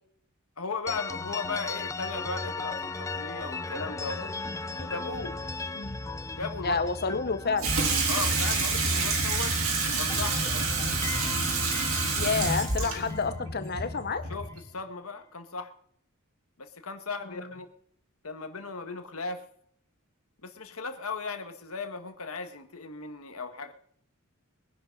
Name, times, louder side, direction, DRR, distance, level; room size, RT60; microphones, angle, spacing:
voice 1, 0.6-4.3 4.8-5.4 6.3-6.8 8.1-9.5 10.0-10.7 14.3-14.5 14.7-15.7 16.6-17.7 18.2-19.4 20.4-23.7, left 4 dB, 85° left, 8 dB, 1.5 m, -36 dB
sound 1, 0.9-9.6 9.9-14.0, left 3 dB, 15° left, 0.6 m, -37 dB
voice 2, 6.6-7.8 12.2-14.2 17.2-17.5, left 4 dB, 45° left, 11 dB, 1.0 m, -29 dB
Water tap faucet / Sink (filling or washing), 7.6-14.6, right 3 dB, 70° right, 2.9 m, -28 dB
22.0 x 10.5 x 3.9 m, 0.67 s
head